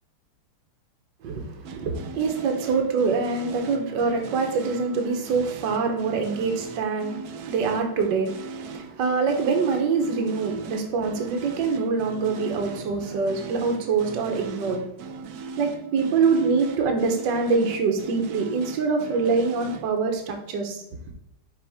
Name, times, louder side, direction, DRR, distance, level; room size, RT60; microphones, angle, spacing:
voice 1, 1.2-14.9 15.6-20.8, right 4 dB, 60° right, 3 dB, 1.5 m, -25 dB
sound 1, 1.6-20.0, right 4 dB, 85° right, 0.8 m, -39 dB
6.1 x 4.7 x 3.5 m, 0.84 s
omnidirectional pair, 2.4 m